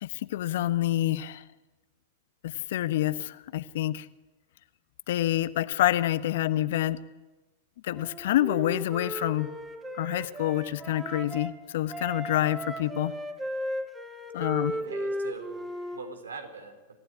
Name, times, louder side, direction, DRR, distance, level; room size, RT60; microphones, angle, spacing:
voice 1, 0.0-1.4 2.4-4.1 5.1-7.0 7.8-9.5 10.0-13.1 14.3-14.7, left 14 dB, 65° left, 13 dB, 1.2 m, -27 dB
Wind instrument woodwind instrument, 7.9-11.5 11.9-16.0, equal, 15° right, 3.0 m, -36 dB
voice 2, 14.7-17.0, right 4 dB, 85° right, 8 dB, 3.9 m, -42 dB
27.5 x 15.0 x 9.8 m, 1.2 s
hypercardioid pair, 105°, 0 cm